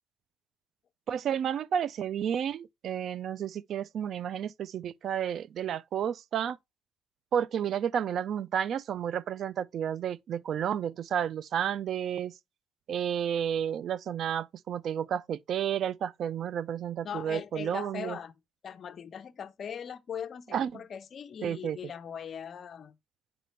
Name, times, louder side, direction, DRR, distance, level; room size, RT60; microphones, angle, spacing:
voice 1, 1.1-6.6 7.3-12.3 12.9-18.2 20.5-20.8 21.4-21.8, right 9 dB, 60° right, 0.3 m, -31 dB
voice 2, 17.0-18.3 18.6-23.0, left 8 dB, 50° left, 0.6 m, -40 dB
7.7 x 5.0 x 3.1 m
cardioid pair, 90°, 0 cm